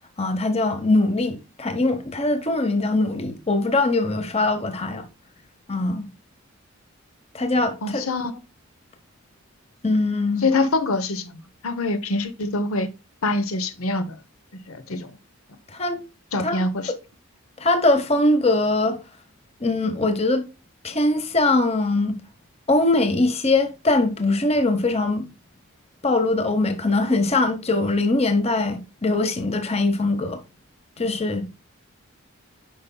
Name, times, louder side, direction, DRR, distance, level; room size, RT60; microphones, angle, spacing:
voice 1, 0.2-5.1 5.7-6.1 7.3-8.1 9.8-10.4 15.7-16.0 16.4-16.6 17.6-19.0 19.6-20.4 20.8-22.1 22.7-25.3 26.0-30.4 31.0-31.5, left 2 dB, 30° left, 0.9 m, -22 dB
voice 2, 7.8-8.4 10.4-11.3 11.6-12.9 13.2-14.2 14.7-15.1 16.3-16.9, left 2 dB, 75° left, 0.8 m, -24 dB
9.3 x 5.5 x 2.2 m
head